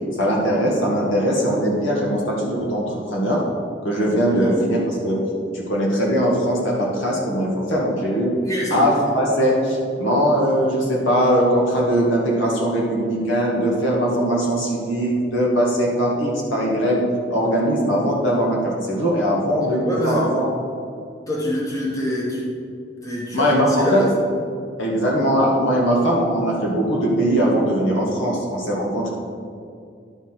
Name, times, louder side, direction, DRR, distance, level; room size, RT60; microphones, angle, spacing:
voice 1, 0.2-3.4 3.8-5.2 5.5-8.3 8.7-17.0 17.3-20.5 23.3-24.0 24.8-29.1, equal, 75° left, -3 dB, 1.9 m, -20 dB
voice 2, 8.4-8.9 19.8-20.3 21.3-22.5 23.0-24.1, equal, 15° left, -4 dB, 1.2 m, -25 dB
11.0 x 5.9 x 4.5 m, 2.4 s
head